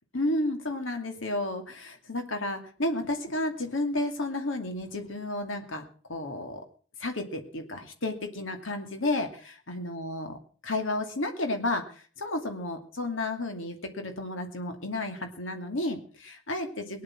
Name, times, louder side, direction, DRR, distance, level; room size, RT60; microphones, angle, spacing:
voice 1, 0.1-5.8 6.1-6.6 7.0-10.4 10.6-17.0, left 2 dB, 80° left, 5 dB, 2.5 m, -32 dB
19.5 x 10.5 x 6.1 m, 0.42 s
head